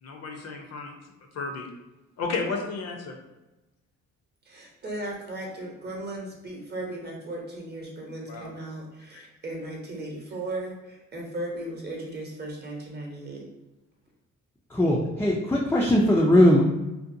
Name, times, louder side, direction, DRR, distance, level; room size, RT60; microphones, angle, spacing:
voice 1, 0.0-0.9 1.3-1.7 2.2-3.2 8.2-8.5 9.1-9.3, left 4 dB, 55° left, 2 dB, 0.6 m, -33 dB
voice 2, 4.4-13.5, right 1 dB, 35° right, -1 dB, 0.7 m, -36 dB
voice 3, 14.7-16.6, left 1 dB, 10° left, -4 dB, 0.3 m, -19 dB
2.6 x 2.1 x 2.5 m, 1.0 s
cardioid pair, 90°, 30 cm